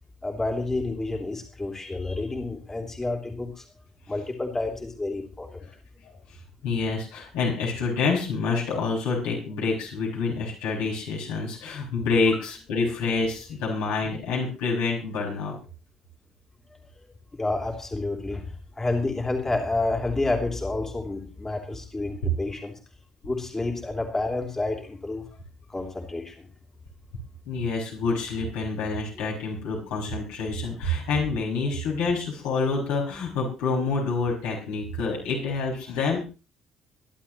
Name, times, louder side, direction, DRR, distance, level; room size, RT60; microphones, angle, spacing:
voice 1, 0.2-3.6 4.1-5.6 17.4-22.7 23.2-25.2 25.7-26.5, left 2 dB, 20° left, 2 dB, 3.4 m, -29 dB
voice 2, 6.6-15.6 22.2-22.3 27.4-36.2, left 4 dB, 65° left, -4 dB, 6.0 m, -27 dB
23.5 x 11.5 x 3.1 m, 0.33 s
figure-of-eight pair, 45°, 2 cm